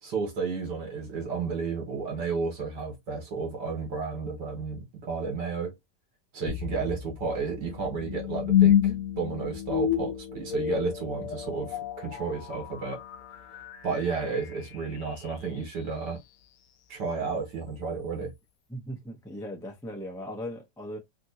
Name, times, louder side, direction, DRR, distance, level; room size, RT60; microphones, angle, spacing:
voice 1, 0.0-5.7 6.3-13.0 13.8-16.2 16.9-18.3, right 5 dB, 75° right, 1.8 m, -32 dB
sound 1, 6.5-15.6, left 10 dB, 75° left, 0.7 m, -29 dB
voice 2, 18.7-21.0, equal, 5° left, 0.3 m, -38 dB
3.4 x 2.9 x 2.7 m
omnidirectional pair, 1.9 m